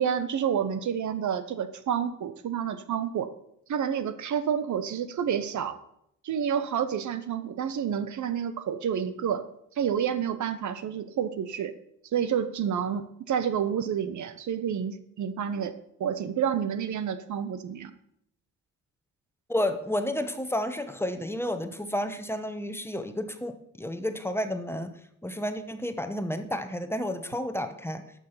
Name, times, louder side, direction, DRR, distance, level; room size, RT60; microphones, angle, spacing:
voice 1, 0.0-3.3 3.7-5.8 6.2-9.5 9.7-11.8 12.1-15.7 16.0-17.9, right 8 dB, 65° right, 12 dB, 0.9 m, -29 dB
voice 2, 19.5-24.9 25.2-28.0, left 1 dB, 5° left, 8 dB, 1.1 m, -31 dB
12.0 x 6.3 x 5.7 m, 0.75 s
cardioid pair, 75°, 32 cm